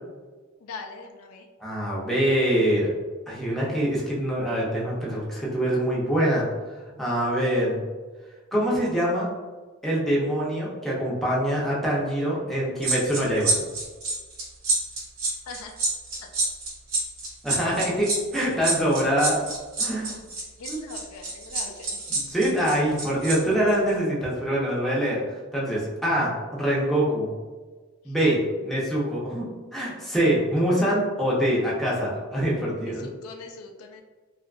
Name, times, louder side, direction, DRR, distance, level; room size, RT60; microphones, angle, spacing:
voice 1, 0.6-1.5 15.5-15.7 16.2-16.3 20.1-20.2 20.6-22.0 32.8-34.0, left 4 dB, 85° left, 4 dB, 0.3 m, -42 dB
voice 2, 1.6-2.9 3.3-6.5 7.0-7.8 8.5-9.3 9.8-13.6 17.4-19.4 19.8-20.2 20.7-20.8 22.1-25.2 25.5-27.3 28.0-29.5 29.7-33.1, equal, ahead, -6 dB, 0.6 m, -24 dB
sound 1, 12.8-23.4 23.7-23.9, right 3 dB, 75° right, 0.8 m, -27 dB
2.6 x 2.4 x 2.3 m, 1.3 s
head